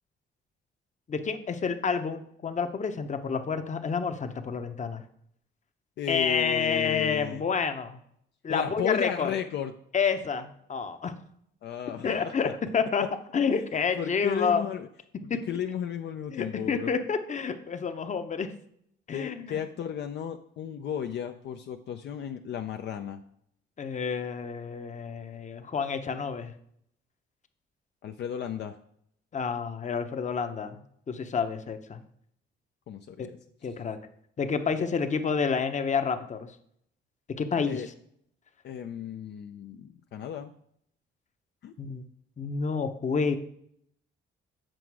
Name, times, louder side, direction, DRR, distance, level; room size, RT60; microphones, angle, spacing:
voice 1, 1.1-5.0 6.1-8.0 8.4-9.3 9.9-11.1 12.0-13.0 13.3-14.6 15.3-15.4 16.3-18.5 19.1-19.6 23.8-26.5 29.3-30.8 31.1-32.0 33.2-33.3 33.6-34.0 34.4-36.5 37.4-37.8 41.8-42.0 42.4-43.4, left 5 dB, 35° left, 8 dB, 0.8 m, -29 dB
voice 2, 6.0-7.4 8.5-9.7 11.6-12.5 13.0-13.1 13.5-13.6 14.0-14.9 15.3-16.9 19.1-23.2 28.0-28.8 32.9-33.4 33.6-33.7 37.7-37.9 38.6-40.5 41.6-41.7, left 9 dB, 60° left, 6 dB, 0.5 m, -34 dB
7.7 x 5.0 x 4.8 m, 0.70 s
cardioid pair, 90°, 20 cm